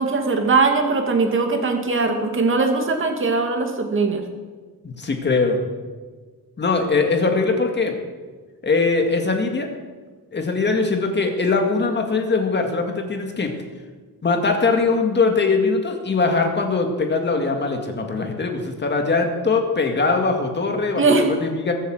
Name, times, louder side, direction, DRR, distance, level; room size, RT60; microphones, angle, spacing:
voice 1, 0.0-4.3 21.0-21.3, right 4 dB, 30° right, 4 dB, 2.4 m, -20 dB
voice 2, 4.8-5.7 6.6-8.0 8.6-9.7 10.3-13.5 14.2-21.7, left 4 dB, 30° left, 4 dB, 2.0 m, -21 dB
21.5 x 8.3 x 7.7 m, 1.4 s
wide cardioid pair, 175°, 38 cm